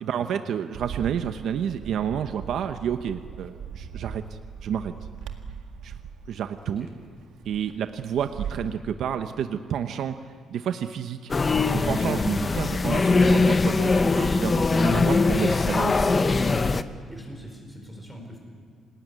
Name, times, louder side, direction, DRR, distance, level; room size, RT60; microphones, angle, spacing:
voice 1, 0.0-4.2 4.6-4.9 5.8-6.0 6.3-6.9 7.4-10.2 10.5-11.3 11.7-16.1, right 8 dB, 60° right, 8 dB, 0.9 m, -30 dB
Bird, 0.7-8.7, right 7 dB, 80° right, 1.9 m, -39 dB
sound 1, 11.3-16.8, left 3 dB, 20° left, 0.8 m, -21 dB
voice 2, 17.1-18.4, equal, ahead, 0 dB, 4.8 m, -42 dB
27.5 x 19.5 x 9.6 m, 2.1 s
cardioid pair, 165°, 0 cm